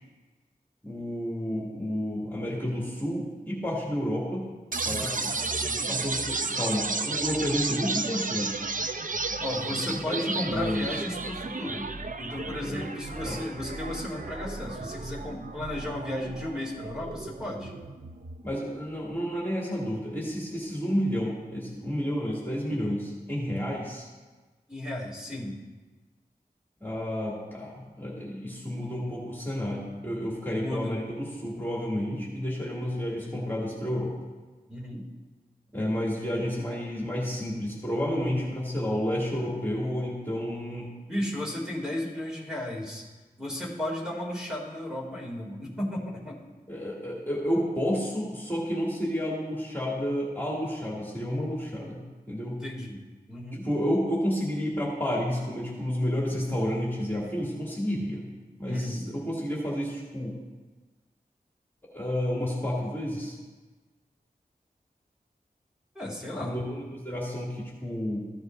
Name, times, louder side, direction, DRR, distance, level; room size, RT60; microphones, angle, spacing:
voice 1, 0.8-4.5 4.8-5.0 5.9-8.6 10.1-10.9 12.6-12.9 13.2-13.4 18.4-24.1 26.8-34.1 35.7-40.9 46.7-52.6 53.6-58.3 58.6-60.4 61.9-63.4 66.4-68.2, equal, 15° left, -5 dB, 2.6 m, -30 dB
sound 1, 4.7-18.7, right 3 dB, 55° right, 0.7 m, -33 dB
voice 2, 4.9-5.9 9.4-11.9 12.2-17.8 24.7-25.6 30.5-31.0 34.7-35.1 41.1-43.1 43.4-46.4 52.5-53.0 53.3-53.7 58.7-59.0 65.9-66.6, left 1 dB, 5° right, -4 dB, 2.8 m, -34 dB
15.0 x 9.5 x 2.7 m, 1.3 s
wide cardioid pair, 40°, 16 cm